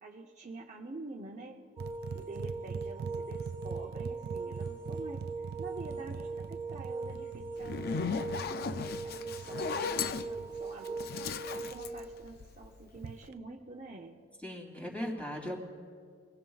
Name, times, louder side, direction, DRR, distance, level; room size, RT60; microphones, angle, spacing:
voice 1, 0.0-1.6 2.1-5.3 5.6-11.1 11.5-14.2, right 2 dB, 40° right, 1 dB, 0.7 m, -47 dB
sound 1, 1.8-11.8, right 4 dB, 15° right, 1.8 m, -40 dB
sound 2, 1.8-10.6 13.0-13.3, right 5 dB, 55° right, 0.3 m, -43 dB
Zipper (clothing), 7.6-12.8, left 6 dB, 55° left, 0.4 m, -36 dB
voice 2, 14.4-15.6, equal, 5° left, -2 dB, 2.8 m, -38 dB
24.0 x 19.5 x 2.4 m, 2.1 s
head